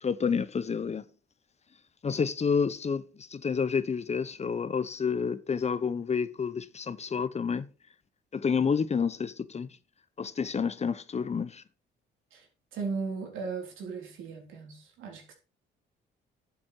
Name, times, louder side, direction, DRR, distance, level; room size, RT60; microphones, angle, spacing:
voice 1, 0.0-1.0 2.0-7.7 8.3-9.7 10.2-11.6, left 6 dB, 35° left, 0.8 m, -29 dB
voice 2, 12.7-15.3, right 4 dB, 85° right, 3.8 m, -36 dB
11.0 x 7.2 x 4.5 m
cardioid pair, 90°, 20 cm